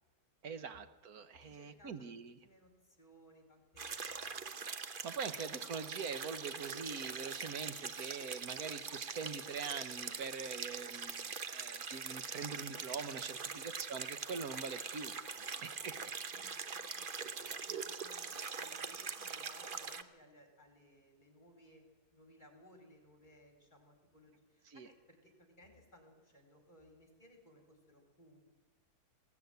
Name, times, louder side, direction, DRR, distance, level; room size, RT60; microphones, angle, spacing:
voice 1, 0.4-2.4 5.0-15.4 15.6-16.0 16.3-16.7 24.7-24.9, right 5 dB, 65° right, 11 dB, 1.6 m, -44 dB
voice 2, 1.4-2.1 2.4-4.6 8.5-8.7 13.5-13.6 15.3-21.8 22.1-28.4, equal, 25° left, 4 dB, 4.9 m, -62 dB
sound 1, 3.8-20.0, right 5 dB, 40° right, 0.9 m, -43 dB
21.0 x 17.0 x 9.5 m, 1.3 s
omnidirectional pair, 1.8 m